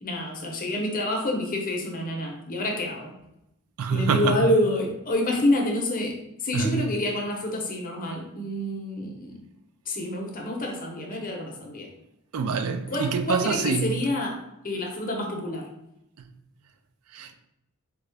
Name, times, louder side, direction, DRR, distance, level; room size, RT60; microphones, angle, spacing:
voice 1, 0.0-3.1 3.9-9.4 9.9-11.9 12.9-15.7, left 1 dB, 40° left, 0.7 m, -28 dB
voice 2, 3.8-4.4 6.5-6.9 12.3-13.9 17.1-17.3, right 5 dB, 85° right, 0.4 m, -25 dB
3.8 x 2.2 x 3.3 m
head